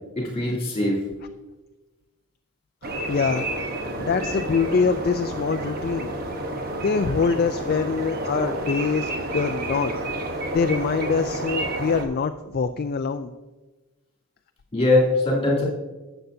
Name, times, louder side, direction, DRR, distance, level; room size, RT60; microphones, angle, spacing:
voice 1, 0.2-1.0 14.7-15.6, left 2 dB, 25° left, -4 dB, 2.9 m, -21 dB
sound 1, 2.8-12.0, right 1 dB, 45° right, 1.0 m, -30 dB
voice 2, 3.1-3.5 4.0-6.1 6.8-9.9 10.5-13.3, left 5 dB, 45° left, 7 dB, 0.3 m, -24 dB
12.5 x 7.9 x 2.7 m, 1.1 s
head